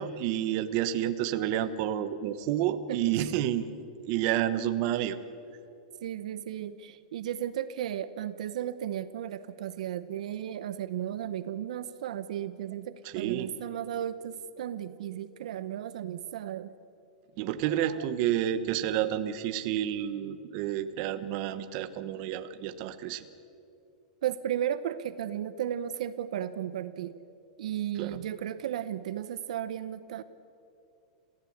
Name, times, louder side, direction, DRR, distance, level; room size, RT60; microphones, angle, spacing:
voice 1, 0.0-3.7 4.0-5.2 13.0-13.5 17.4-23.2 28.0-28.2, right 11 dB, 40° right, 10 dB, 1.1 m, -30 dB
voice 2, 2.9-3.4 4.3-4.4 6.0-16.7 17.7-18.1 24.2-27.1 27.6-30.2, right 10 dB, 70° right, 13 dB, 0.8 m, -35 dB
27.5 x 15.5 x 8.7 m, 2.7 s
supercardioid pair, 165°, 4 cm